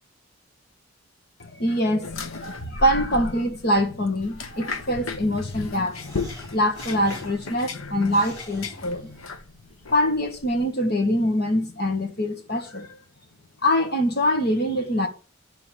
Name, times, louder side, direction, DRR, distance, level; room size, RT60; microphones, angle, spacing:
voice 1, 1.4-9.2 9.9-12.9 13.6-15.1, equal, 50° left, 1.6 m, -24 dB
sound 1, 2.0-10.7, left 3 dB, 85° left, 1.1 m, -36 dB
sound 2, 5.9-9.6, equal, 15° left, 5.2 m, -45 dB
11.5 x 4.0 x 7.5 m
head